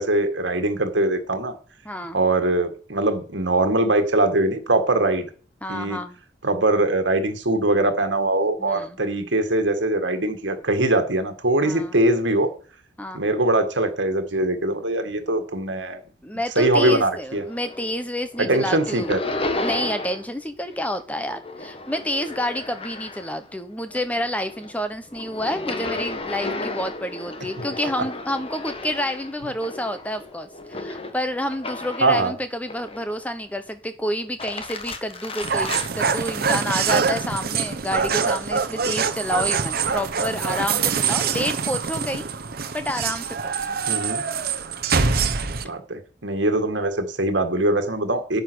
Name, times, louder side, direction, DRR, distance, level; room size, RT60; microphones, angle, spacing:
voice 1, 0.0-1.5 2.1-5.3 5.7-6.0 6.4-12.5 13.1-16.0 16.6-17.4 18.4-19.2 32.0-32.3 43.9-44.2 45.5-48.4, right 2 dB, 75° right, 7 dB, 1.9 m, -22 dB
voice 2, 1.8-2.2 5.6-6.2 8.6-9.0 11.6-12.0 13.0-13.3 16.2-19.2 19.6-42.3 42.7-43.8, left 1 dB, 10° left, 9 dB, 1.0 m, -29 dB
sound 1, 17.3-18.0 18.3-20.3 20.6-23.5 23.9-32.2 32.7-33.4 34.2-35.9, left 2 dB, 30° left, 1.3 m, -33 dB
sound 2, 35.4-45.7, right 5 dB, 50° right, 0.9 m, -24 dB
9.8 x 9.2 x 6.3 m, 0.42 s
head